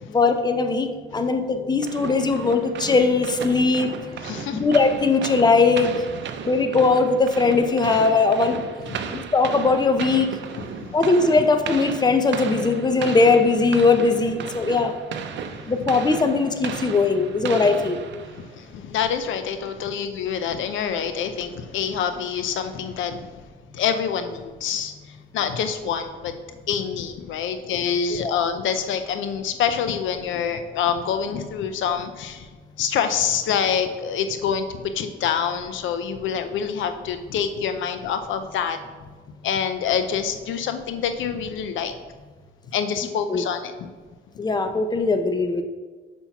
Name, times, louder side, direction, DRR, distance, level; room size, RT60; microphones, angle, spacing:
voice 1, 0.1-3.9 4.5-5.9 6.5-8.6 9.1-10.3 10.9-14.9 15.7-18.0 28.2-28.4 43.3-43.4 44.4-45.6, left 4 dB, 20° left, 7 dB, 0.7 m, -20 dB
sound 1, 1.8-18.6, right 7 dB, 65° right, 0.6 m, -35 dB
voice 2, 4.2-4.7 6.3-6.4 9.0-9.2 10.8-10.9 15.4-15.7 18.3-23.3 23.7-24.9 25.3-26.3 26.7-32.5 32.8-38.8 39.4-41.9 42.7-43.9, left 7 dB, 75° left, 9 dB, 0.5 m, -26 dB
5.6 x 4.3 x 5.8 m, 1.4 s
cardioid pair, 90°, 20 cm